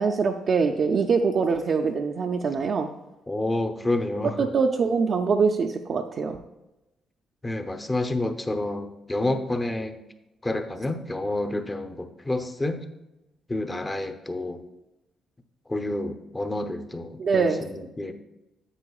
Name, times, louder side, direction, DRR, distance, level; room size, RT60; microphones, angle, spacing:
voice 1, 0.0-2.9 4.4-6.4 17.2-17.6, right 5 dB, 50° right, 1 dB, 0.5 m, -23 dB
voice 2, 3.3-4.5 7.4-10.0 10.4-12.8 13.5-14.6 15.7-18.1, left 2 dB, 20° left, 7 dB, 0.8 m, -29 dB
9.8 x 7.6 x 2.4 m, 0.98 s
cardioid pair, 90°, 0 cm